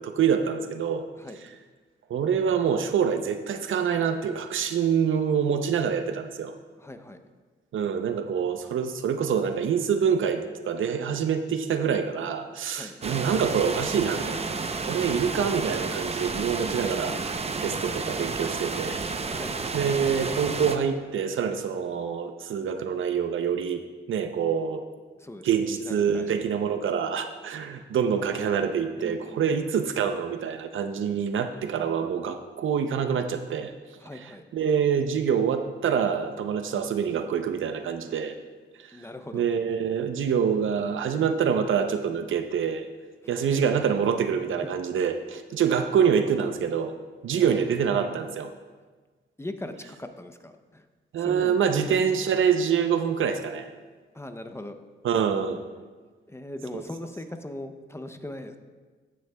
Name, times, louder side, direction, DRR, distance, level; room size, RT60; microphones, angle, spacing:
voice 1, 0.0-1.1 2.1-6.5 7.7-14.5 14.8-19.0 19.7-23.8 24.1-24.8 25.4-33.7 34.5-38.4 38.8-38.9 39.3-42.9 43.3-46.9 47.2-48.5 51.1-53.7 55.0-55.6 56.7-56.8, right 7 dB, 75° right, 8 dB, 0.6 m, -26 dB
voice 2, 6.8-7.2 12.7-13.0 15.0-15.2 19.2-19.6 25.2-26.3 29.0-29.5 34.0-34.4 38.9-39.4 43.2-43.6 44.6-44.7 47.3-47.6 49.4-50.9 51.2-51.6 54.1-54.8 56.3-58.6, left 1 dB, 15° left, 7 dB, 0.6 m, -40 dB
sound 1, 13.0-20.8, right 4 dB, 30° right, 0.6 m, -31 dB
15.5 x 6.3 x 2.2 m, 1.4 s
cardioid pair, 85°, 21 cm